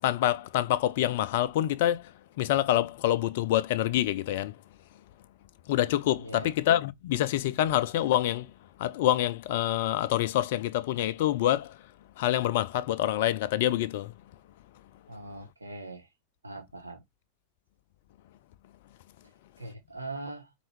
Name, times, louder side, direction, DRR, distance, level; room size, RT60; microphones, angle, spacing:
voice 1, 0.0-2.1 2.4-4.6 5.7-8.5 8.8-11.8 12.2-14.1, left 13 dB, 50° left, 0.3 m, -26 dB
voice 2, 6.2-6.5 15.1-16.1 16.4-17.0 19.6-20.5, right 2 dB, 80° right, 1.1 m, -41 dB
4.4 x 3.0 x 3.1 m
figure-of-eight pair, 90°, 0 cm